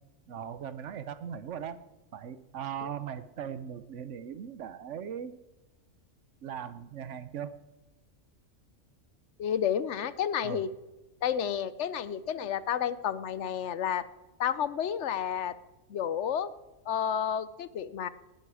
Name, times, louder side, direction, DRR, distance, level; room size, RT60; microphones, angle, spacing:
voice 1, 0.3-1.8 2.1-5.4 6.4-7.5 10.4-10.6 12.4-12.5, right 8 dB, 70° right, 14 dB, 1.1 m, -39 dB
voice 2, 9.4-10.7 11.2-14.0 14.4-15.5 15.9-16.5 16.9-18.1, left 8 dB, 70° left, 16 dB, 1.0 m, -31 dB
19.0 x 13.0 x 4.9 m, 1.1 s
omnidirectional pair, 1.3 m